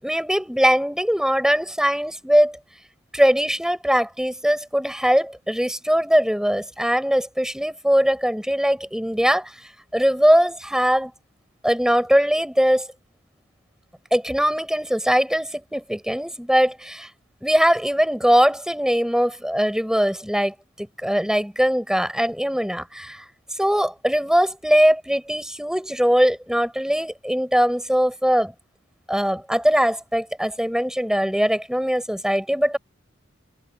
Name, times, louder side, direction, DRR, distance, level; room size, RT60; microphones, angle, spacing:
voice 1, 0.0-2.6 3.1-9.5 9.9-11.1 11.6-12.9 14.1-17.1 17.4-23.2 23.6-28.5 29.1-32.8, equal, 5° right, 7.3 m, -21 dB
head